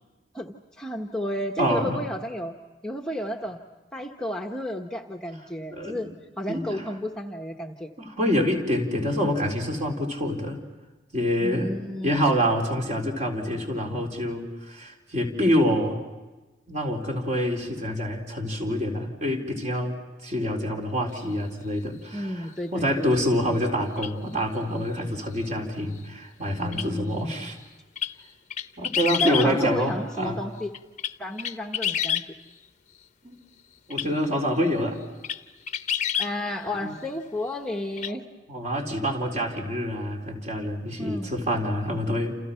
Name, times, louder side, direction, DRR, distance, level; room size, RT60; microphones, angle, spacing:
voice 1, 0.3-2.5 2.8-3.6 3.9-6.1 6.4-7.9 11.4-12.4 22.1-23.1 26.6-27.5 29.2-30.7 31.2-32.2 36.2-38.2 41.0-41.4, left 1 dB, 5° left, 2 dB, 1.2 m, -32 dB
voice 2, 1.6-2.0 5.7-6.1 6.5-6.8 8.0-10.6 11.1-11.7 12.0-16.0 16.7-22.3 22.7-27.6 28.8-30.4 33.2-33.4 33.9-35.0 36.8-37.0 38.5-42.3, equal, 40° right, 1 dB, 4.2 m, -26 dB
sound 1, 24.0-24.1 26.7-26.9 28.0-28.1 28.5-29.5 30.7-32.3 33.9-34.1 34.7-34.8 35.2-35.4 35.7-36.3 38.0-38.1, left 9 dB, 40° left, 0.8 m, -28 dB
29.0 x 29.0 x 5.7 m, 1.2 s
head